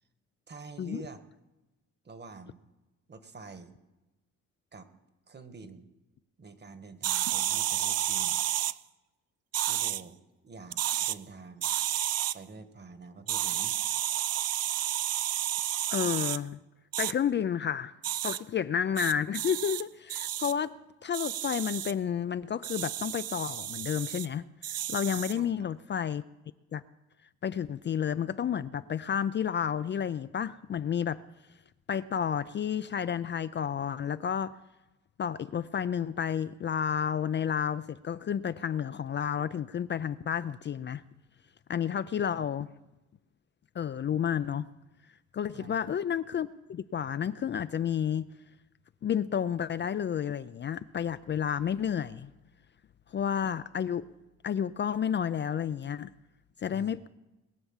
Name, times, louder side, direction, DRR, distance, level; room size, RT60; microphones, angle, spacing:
voice 1, 0.5-1.2 2.0-2.7 3.1-3.8 4.7-4.9 5.3-5.9 6.4-8.4 9.6-11.7 12.3-13.8 25.3-25.5 42.3-42.5 45.5-45.7 56.7-57.0, right 4 dB, 35° right, 1.5 m, -47 dB
sound 1, 7.0-8.7 9.5-10.0 10.7-11.2 11.6-12.3 13.3-16.4 16.9-17.1 18.0-18.4 19.0-19.8 20.1-20.5 21.1-21.9 22.6-24.3 24.6-25.4, right 12 dB, 55° right, 0.5 m, -31 dB
voice 2, 15.9-16.6 17.0-17.9 18.2-26.2 26.7-26.8 27.4-31.2 31.9-34.5 35.2-41.0 41.7-42.7 43.8-44.7 45.3-48.3 49.0-52.3 53.1-54.1 54.4-56.1 56.6-57.1, left 8 dB, 40° left, 0.4 m, -31 dB
21.0 x 7.0 x 7.3 m
cardioid pair, 90°, 30 cm